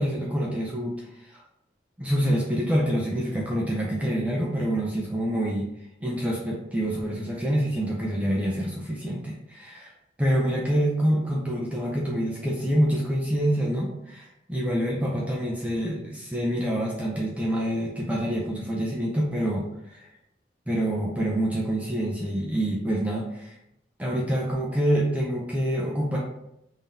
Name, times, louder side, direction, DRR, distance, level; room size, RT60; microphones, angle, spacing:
voice 1, 0.0-1.4 2.0-5.7 6.0-9.9 10.2-20.1 20.7-23.6 24.0-26.2, equal, 10° right, -4 dB, 0.5 m, -26 dB
3.7 x 2.7 x 3.4 m, 0.81 s
head